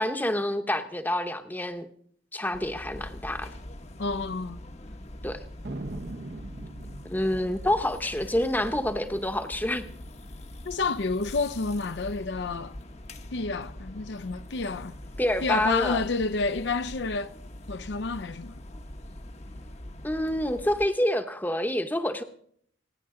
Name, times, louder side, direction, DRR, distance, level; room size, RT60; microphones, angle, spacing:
voice 1, 0.0-1.9 2.3-3.5 5.2-5.4 7.0-9.9 15.2-16.0 20.0-22.2, left 1 dB, 10° left, 0.9 m, -27 dB
sound 1, 2.5-20.9, left 1 dB, 35° left, 0.9 m, -43 dB
voice 2, 4.0-4.6 10.6-12.8 13.3-15.0 15.4-17.3 17.7-18.6, left 4 dB, 60° left, 0.6 m, -29 dB
Thunder, 5.6-10.5 10.7-10.8 11.0-11.6 12.1-13.3, right 2 dB, 55° right, 0.8 m, -43 dB
28.5 x 9.9 x 3.8 m
head